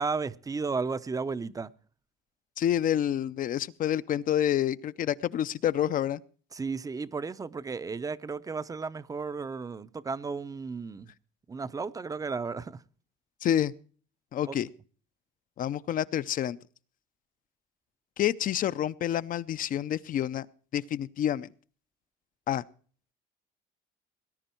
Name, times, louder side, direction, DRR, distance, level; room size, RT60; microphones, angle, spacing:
voice 1, 0.0-1.7 6.5-11.1 11.5-12.8 14.4-14.6, right 4 dB, 20° right, 0.6 m, -34 dB
voice 2, 2.6-6.2 13.4-13.7 14.3-14.7 15.6-16.6 18.2-20.5 20.7-21.5 22.5-22.6, left 11 dB, 45° left, 0.6 m, -28 dB
19.0 x 10.5 x 4.4 m
cardioid pair, 130°, 19 cm